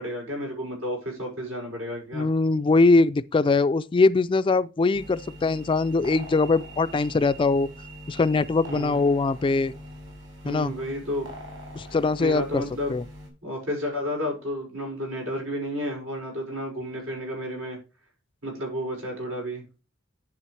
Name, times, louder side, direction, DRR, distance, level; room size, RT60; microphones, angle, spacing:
voice 1, 0.0-2.3 8.7-9.0 10.4-11.2 12.2-12.9 13.4-17.8 18.4-19.6, equal, 85° right, 5.9 m, -31 dB
voice 2, 2.1-7.7 8.1-9.7 10.4-10.7 11.8-12.6 12.9-13.1, left 3 dB, 25° left, 0.3 m, -22 dB
sound 1, 4.9-13.3, equal, 70° right, 4.8 m, -42 dB
11.0 x 6.2 x 3.3 m
head